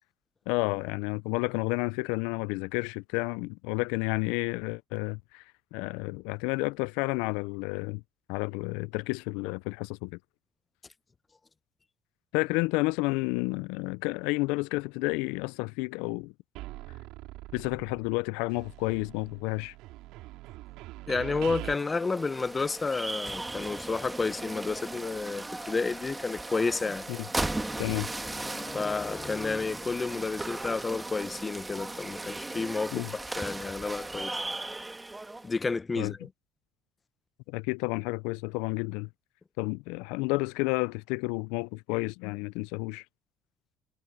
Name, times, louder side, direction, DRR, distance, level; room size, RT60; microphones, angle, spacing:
voice 1, 0.5-5.4 5.7-8.0 8.3-10.2 12.3-16.3 17.5-19.7 27.1-27.2 27.8-28.1 32.9-33.1 36.0-36.1 37.5-39.1 39.6-43.0, left 25 dB, 85° left, 0.3 m, -31 dB
sound 1, 16.6-18.2 18.5-21.7, right 18 dB, 80° right, 4.3 m, -43 dB
voice 2, 21.1-27.1 27.4-27.9 28.2-34.4 35.4-36.3, left 4 dB, 25° left, 0.9 m, -31 dB
sound 2, 21.5-35.5, right 2 dB, 15° right, 2.3 m, -37 dB
supercardioid pair, 95°, 0 cm